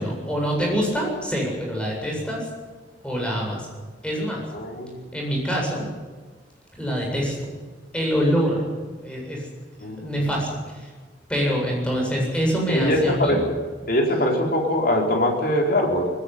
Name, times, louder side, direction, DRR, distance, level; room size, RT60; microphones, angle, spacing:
voice 1, 0.0-2.4 3.0-3.7 4.0-4.4 5.1-5.9 6.7-7.5 7.9-8.7 9.0-9.5 10.0-10.9 11.3-13.4, equal, 5° left, -1 dB, 7.8 m, -25 dB
voice 2, 4.5-5.0 9.8-10.1 12.7-13.4 13.9-16.1, left 1 dB, 60° left, 0 dB, 4.2 m, -22 dB
20.0 x 17.0 x 9.8 m, 1.4 s
head